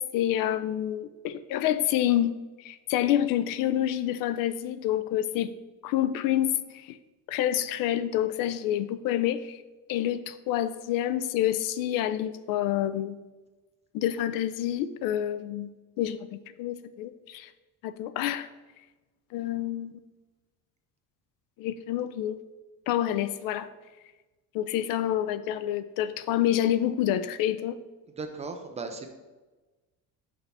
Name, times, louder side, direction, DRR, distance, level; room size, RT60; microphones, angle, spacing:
voice 1, 0.0-5.5 5.8-7.0 7.3-9.6 9.9-13.2 13.9-17.5 17.8-18.5 19.3-19.9 21.6-22.4 22.9-23.7 24.5-27.8, left 12 dB, 80° left, 13 dB, 0.5 m, -28 dB
voice 2, 28.2-29.1, right 4 dB, 20° right, 5 dB, 0.3 m, -36 dB
5.9 x 5.4 x 3.4 m, 1.2 s
cardioid pair, 175°, 33 cm